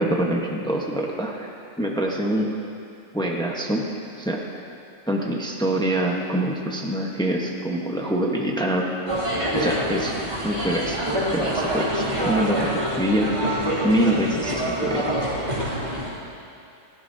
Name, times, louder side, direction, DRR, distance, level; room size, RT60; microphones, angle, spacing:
voice 1, 0.0-1.5 1.8-2.5 3.1-3.8 4.2-4.4 5.1-8.9 9.5-10.1 10.4-13.5 13.8-15.1, right 1 dB, 5° left, 0 dB, 0.9 m, -25 dB
sound 1, 9.1-16.1, right 1 dB, 30° right, 2.7 m, -26 dB
19.5 x 15.0 x 2.7 m, 2.6 s
omnidirectional pair, 1.4 m